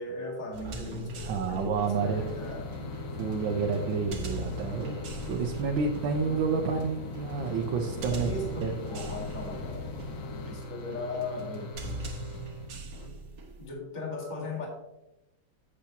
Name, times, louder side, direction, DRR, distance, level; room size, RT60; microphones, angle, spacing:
voice 1, 0.0-2.7 8.1-10.0 10.5-11.7 13.0-13.1 13.6-14.7, left 2 dB, 25° left, -3 dB, 1.8 m, -38 dB
sound 1, 0.5-13.7, right 1 dB, 60° right, 1.6 m, -42 dB
voice 2, 1.2-2.2 3.1-8.3 8.6-8.7, right 5 dB, 80° right, 1 dB, 1.5 m, -30 dB
sound 2, 1.7-13.1, left 1 dB, 85° left, 1.8 m, -42 dB
sound 3, 1.9-10.5, left 4 dB, 65° left, 0.8 m, -41 dB
8.2 x 7.4 x 2.9 m, 0.93 s
omnidirectional pair, 2.1 m